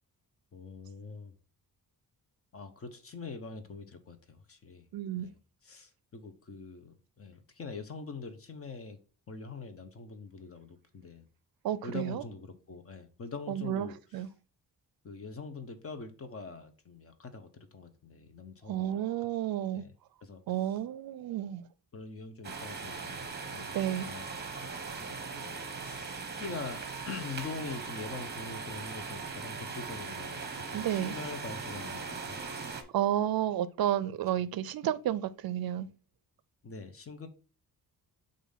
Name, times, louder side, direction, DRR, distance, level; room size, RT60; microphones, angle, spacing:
voice 1, 0.5-1.3 2.5-4.9 5.1-5.4 5.6-9.0 9.3-11.3 11.8-14.3 15.0-19.3 19.7-19.9 20.2-20.4 21.9-24.3 24.6-32.4 36.6-37.3, left 4 dB, 35° left, 0.8 m, -44 dB
voice 2, 4.9-5.3 11.6-12.2 13.5-13.9 14.1-14.3 18.7-19.8 20.5-21.7 23.7-24.1 30.7-31.1 32.9-35.9, right 11 dB, 70° right, 0.5 m, -31 dB
sound 1, 22.4-32.8, right 4 dB, 25° right, 0.9 m, -40 dB
6.9 x 2.6 x 5.5 m
wide cardioid pair, 165°, 38 cm